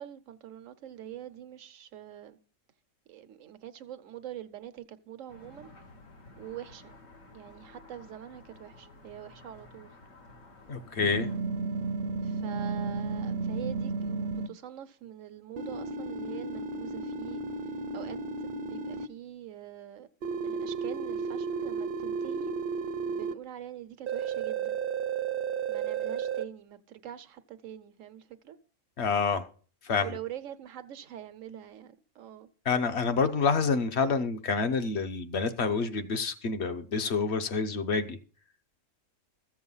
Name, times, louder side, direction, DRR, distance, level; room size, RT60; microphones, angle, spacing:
voice 1, 0.0-2.4 3.1-5.7 6.4-7.0 7.3-9.9 12.2-17.4 17.9-20.1 20.4-22.5 23.1-24.8 25.7-28.6 29.9-32.5, right 11 dB, 85° right, 1.2 m, -44 dB
sound 1, 5.3-11.4, left 2 dB, 85° left, 2.2 m, -53 dB
voice 2, 10.7-11.3 29.0-29.5 29.8-30.2 32.6-38.2, left 5 dB, 60° left, 1.2 m, -28 dB
sound 2, 11.0-14.5 15.6-19.1 20.2-23.3 24.1-26.4, right 5 dB, 55° right, 0.7 m, -33 dB
14.0 x 7.4 x 5.5 m
omnidirectional pair, 1.3 m